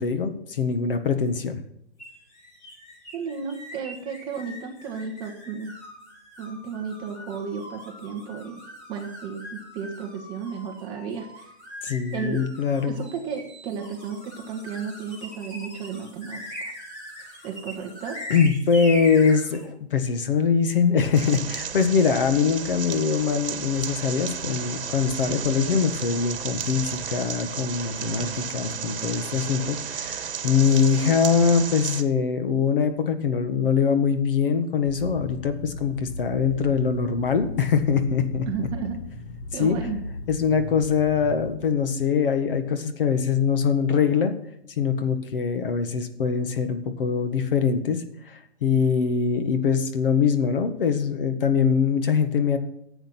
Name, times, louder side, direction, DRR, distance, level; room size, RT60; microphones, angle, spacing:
voice 1, 0.0-1.6 11.8-13.0 18.3-38.7 39.5-39.8 40.3-44.3 44.8-52.6, left 6 dB, 55° left, 9 dB, 1.7 m, -23 dB
sound 1, 2.0-19.7, equal, 25° left, 5.2 m, -41 dB
voice 2, 3.1-5.7 6.4-8.6 8.9-11.5 12.1-12.5 12.9-16.7 17.4-18.2 38.4-39.0 39.5-40.0, right 6 dB, 15° right, 3 dB, 1.0 m, -33 dB
sound 2, 21.1-32.0, right 8 dB, 60° right, 1.6 m, -33 dB
sound 3, 34.9-41.6, left 2 dB, 75° left, 1.7 m, -37 dB
11.0 x 8.0 x 6.0 m, 0.77 s
hypercardioid pair, 165°, 33 cm